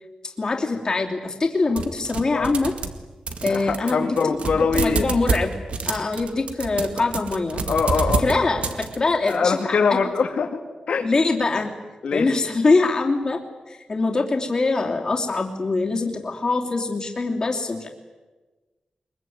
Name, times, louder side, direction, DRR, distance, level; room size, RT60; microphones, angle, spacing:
voice 1, 0.4-2.7 3.4-5.5 5.9-7.7 8.2-9.8 11.0-11.7 12.1-13.4 13.7-17.9, left 3 dB, 35° left, 2 dB, 3.0 m, -23 dB
sound 1, 1.8-3.0 3.3-9.4, right 4 dB, 65° right, 2.1 m, -28 dB
voice 2, 3.5-5.1 7.7-8.3 9.3-10.6 10.9-11.1 12.0-12.3, left 5 dB, 75° left, 4 dB, 2.3 m, -23 dB
23.5 x 22.0 x 9.4 m, 1.3 s
wide cardioid pair, 170°, 2 cm